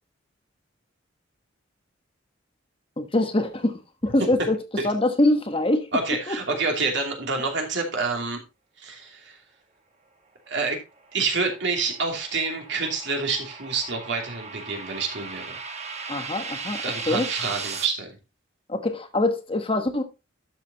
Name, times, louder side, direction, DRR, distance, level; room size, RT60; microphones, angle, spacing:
voice 1, 3.0-5.9 6.3-6.4 16.1-17.3 18.7-20.0, left 2 dB, 30° left, 1.2 m, -24 dB
voice 2, 5.9-8.4 8.8-9.4 10.5-10.8 11.1-15.5 16.8-18.2, right 4 dB, 65° right, 2.8 m, -27 dB
sound 1, 11.0-17.8, right 5 dB, 35° right, 1.4 m, -37 dB
12.0 x 6.5 x 2.9 m
head